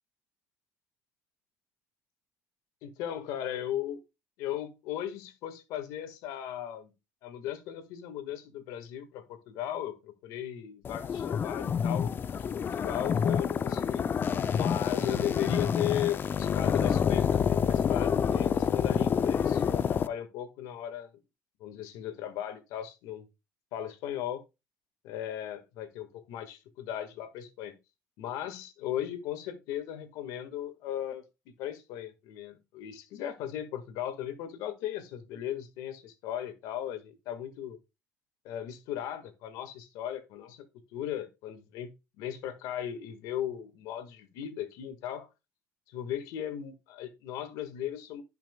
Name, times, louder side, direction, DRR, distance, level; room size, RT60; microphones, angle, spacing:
voice 1, 2.8-4.0 4.4-6.9 7.2-14.1 14.5-21.1 21.6-23.3 23.7-24.4 25.0-27.8 28.2-37.8 38.4-40.6 40.9-45.3 45.9-48.2, left 11 dB, 90° left, 1.7 m, -37 dB
sound 1, 10.8-20.1, left 7 dB, 35° left, 0.5 m, -28 dB
16.0 x 5.9 x 2.3 m
cardioid pair, 120°, 6 cm